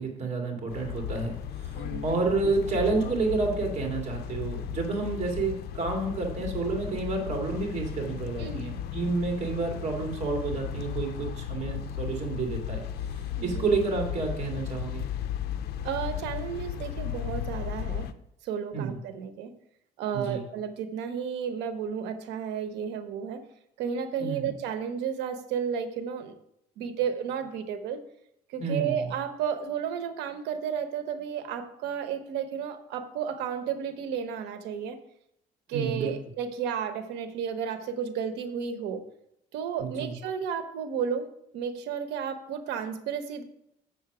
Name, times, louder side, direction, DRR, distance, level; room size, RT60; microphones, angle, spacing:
voice 1, 0.0-1.8 2.0-12.8 13.4-15.0 18.7-19.0 20.1-20.4 24.2-24.5 28.6-29.1 35.7-36.1 39.8-40.1, right 3 dB, 45° right, 1 dB, 2.4 m, -30 dB
sound 1, 0.7-18.1, left 9 dB, 70° left, 0.6 m, -35 dB
voice 2, 1.7-2.1 8.4-8.6 13.4-13.6 15.8-18.1 18.4-19.5 20.0-23.4 23.8-26.4 26.8-28.0 28.5-35.0 35.7-39.0 39.5-41.3 41.5-43.4, right 7 dB, 90° right, 10 dB, 0.9 m, -32 dB
7.1 x 6.5 x 4.9 m, 0.78 s
cardioid pair, 110°, 17 cm